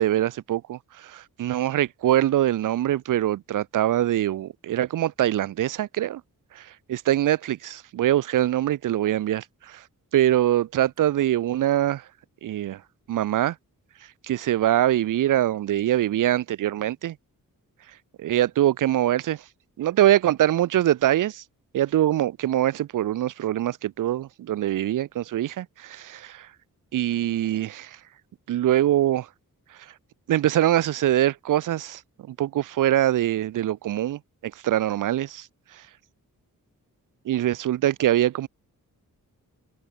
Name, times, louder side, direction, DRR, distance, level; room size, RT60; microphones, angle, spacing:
voice 1, 0.0-6.2 6.5-9.8 10.1-12.0 12.4-12.8 13.1-13.6 14.3-17.2 18.2-19.4 19.8-21.4 21.7-26.5 26.9-28.0 28.5-29.3 30.3-32.0 32.3-35.5 37.3-38.5, right 12 dB, 60° right, 0.4 m, -23 dB
cardioid pair, 60°, 36 cm